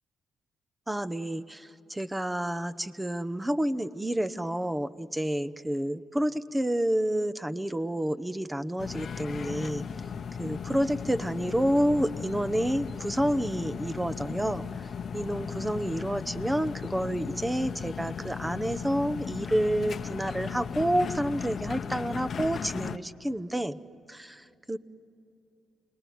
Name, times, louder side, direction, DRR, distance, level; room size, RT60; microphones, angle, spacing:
voice 1, 0.9-9.9 10.4-14.6 15.1-23.8 24.1-24.8, right 1 dB, 10° right, 12 dB, 0.8 m, -29 dB
sound 1, 8.8-23.0, left 7 dB, 55° left, 0.8 m, -36 dB
29.0 x 20.0 x 9.4 m, 2.8 s
cardioid pair, 75°, 0 cm